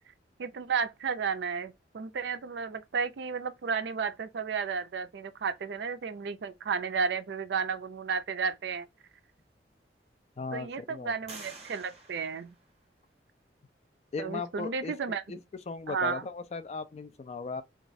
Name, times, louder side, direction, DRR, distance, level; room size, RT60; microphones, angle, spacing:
voice 1, 0.4-8.9 10.5-12.5 14.2-15.2 15.9-16.2, right 5 dB, 70° right, 0.4 m, -33 dB
sound 1, 9.0-9.1 9.7-10.3 11.3-13.2, right 3 dB, 35° right, 1.3 m, -50 dB
voice 2, 10.4-11.1 14.1-14.9 15.3-17.6, left 4 dB, 35° left, 0.3 m, -37 dB
3.0 x 2.3 x 2.5 m
head